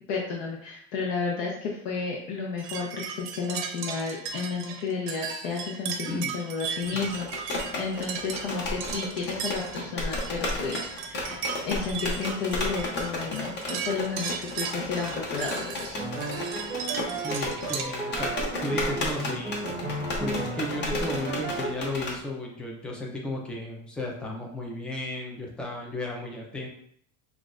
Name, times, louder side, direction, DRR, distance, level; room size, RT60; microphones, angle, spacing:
voice 1, 0.1-7.3 7.8-16.0, left 5 dB, 65° left, -1 dB, 0.8 m, -32 dB
sound 1, 2.6-17.8, right 7 dB, 55° right, 0.6 m, -36 dB
voice 2, 6.1-6.4 6.8-7.0 17.1-18.3 18.6-19.8 20.2-26.7, left 1 dB, 5° left, -1 dB, 0.3 m, -34 dB
sound 2, 6.9-22.2, left 2 dB, 30° left, 0.7 m, -33 dB
sound 3, 15.9-21.7, right 2 dB, 20° right, 0.8 m, -33 dB
5.9 x 2.4 x 2.4 m, 0.66 s
supercardioid pair, 150°, 37 cm